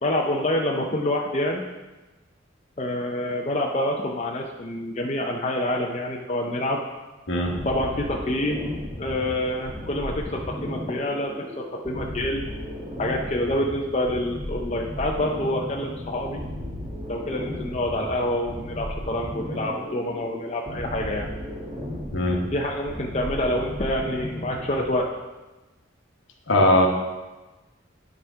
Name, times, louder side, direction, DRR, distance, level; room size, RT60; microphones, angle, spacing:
voice 1, 0.0-1.7 2.8-6.8 7.6-8.7 9.0-12.5 13.0-16.4 17.1-21.3 22.5-25.1, left 1 dB, 35° left, 0 dB, 0.6 m, -27 dB
sound 1, 7.4-25.1, left 1 dB, 15° right, 1.4 m, -35 dB
voice 2, 26.5-26.9, left 1 dB, 70° left, 1 dB, 1.3 m, -19 dB
10.5 x 3.6 x 5.6 m, 1.2 s
head